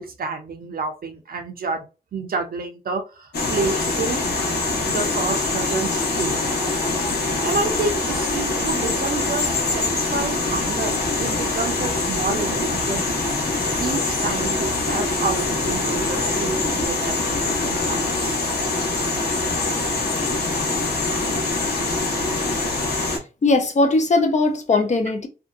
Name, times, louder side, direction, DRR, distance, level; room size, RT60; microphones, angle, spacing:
voice 1, 0.0-1.9 2.1-4.2 4.9-6.4 7.4-13.0 13.3-13.4 13.8-18.4, right 4 dB, 60° right, 0.6 m, -29 dB
sound 1, 3.3-23.2, left 3 dB, 75° left, 0.9 m, -24 dB
sound 2, 7.5-16.9, right 1 dB, 5° right, 0.6 m, -39 dB
voice 2, 23.4-25.3, left 3 dB, 45° left, 0.5 m, -19 dB
2.7 x 2.1 x 2.4 m
wide cardioid pair, 130°, 17 cm